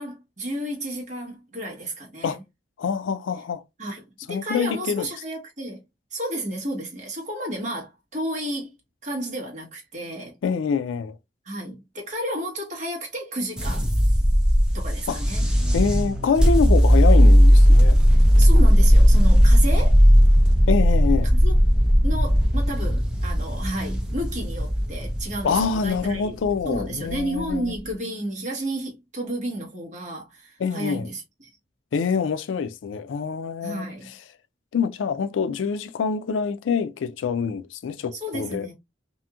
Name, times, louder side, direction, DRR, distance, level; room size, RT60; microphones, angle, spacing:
voice 1, 0.0-2.4 3.8-5.8 6.1-8.7 9.0-10.3 11.4-13.9 14.7-15.5 18.4-20.0 21.4-21.5 22.0-26.4 26.6-31.5 33.6-34.1 38.2-38.7, right 1 dB, 40° right, 1.1 m, -32 dB
voice 2, 2.8-3.6 4.3-5.1 10.4-11.1 15.1-15.2 15.7-18.0 20.7-21.3 25.4-27.8 30.6-31.1 31.9-34.2 34.7-38.7, left 6 dB, 90° left, 0.4 m, -25 dB
sound 1, 13.6-27.8, equal, 5° right, 0.6 m, -17 dB
2.9 x 2.5 x 2.3 m
head